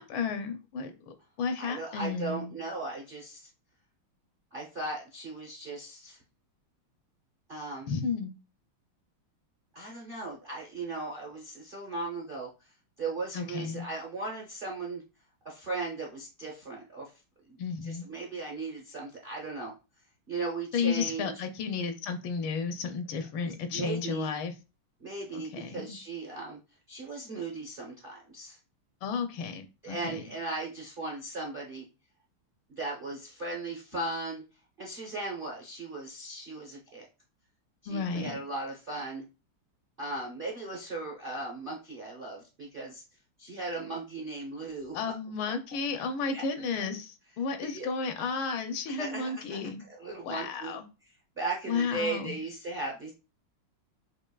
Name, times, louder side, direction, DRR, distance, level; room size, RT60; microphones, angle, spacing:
voice 1, 0.0-2.5 7.9-8.4 13.3-13.9 17.6-18.1 20.7-24.5 25.3-26.0 29.0-30.2 37.9-38.4 44.9-49.8 50.2-50.9 51.7-52.3, left 5 dB, 75° left, 7 dB, 1.3 m, -33 dB
voice 2, 1.6-3.5 4.5-6.2 7.5-7.9 9.7-12.7 13.0-15.0 15.4-17.1 17.5-19.7 20.3-21.3 23.7-24.3 25.0-26.6 26.9-28.6 29.8-31.9 32.7-34.4 34.8-37.1 37.8-39.2 40.0-43.0 43.4-45.1 46.3-46.4 47.6-47.9 49.0-49.6 49.9-50.7 51.4-53.1, right 3 dB, 50° right, -1 dB, 0.6 m, -37 dB
5.9 x 2.5 x 2.3 m, 0.29 s
omnidirectional pair, 2.4 m